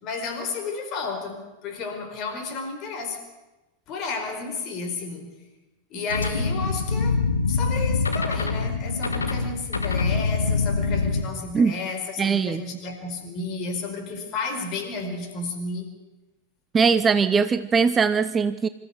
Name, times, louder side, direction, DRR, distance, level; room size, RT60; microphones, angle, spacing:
voice 1, 0.0-3.2 3.9-5.4 5.9-7.2 7.5-15.9, left 4 dB, 35° left, 5 dB, 4.7 m, -32 dB
sound 1, 6.1-11.2, left 4 dB, 75° left, 2.0 m, -24 dB
voice 2, 12.2-12.6 16.7-18.7, right 5 dB, 20° right, 13 dB, 0.7 m, -20 dB
25.5 x 14.5 x 8.2 m, 1.1 s
figure-of-eight pair, 90°, 0 cm